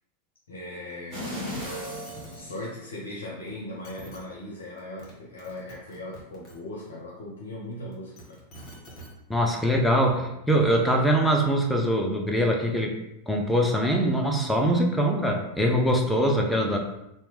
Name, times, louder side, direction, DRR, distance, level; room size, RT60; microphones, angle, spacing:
voice 1, 0.5-1.5 2.3-8.4, left 1 dB, 65° left, -4 dB, 0.5 m, -39 dB
sound 1, 1.1-3.2 3.7-3.8, equal, 25° right, 1.3 m, -36 dB
sound 2, 1.5-1.6 1.9-2.4 3.5-3.6 3.8-4.2 4.8-5.1 5.4-6.5 7.9-9.1 10.1-10.2, right 1 dB, 30° left, 1.1 m, -46 dB
voice 2, 9.3-12.9 13.3-16.8, equal, 5° left, 1 dB, 0.5 m, -23 dB
2.8 x 2.1 x 3.1 m, 0.86 s
figure-of-eight pair, 90°, 0 cm